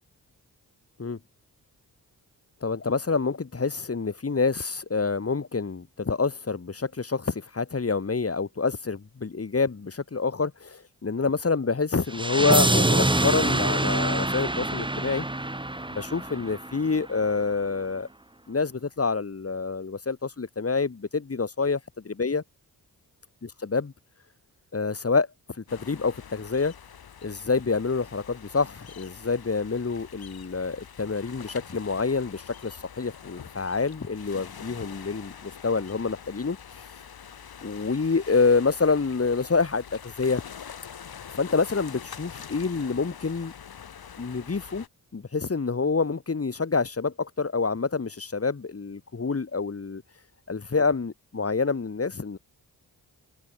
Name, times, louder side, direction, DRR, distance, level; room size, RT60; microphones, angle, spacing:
voice 1, 2.6-15.3 15.9-18.1 18.5-22.4 23.4-23.9 24.7-25.3 25.6-26.7 27.2-36.6 37.6-40.4 41.4-43.5 44.2-44.8 45.1-50.0 50.5-52.4, left 4 dB, 35° left, 2.3 m, -27 dB
sound 1, 12.1-17.1, right 1 dB, 15° right, 2.0 m, -25 dB
sound 2, 25.7-44.9, left 8 dB, 70° left, 2.4 m, -45 dB
cardioid pair, 60°, 38 cm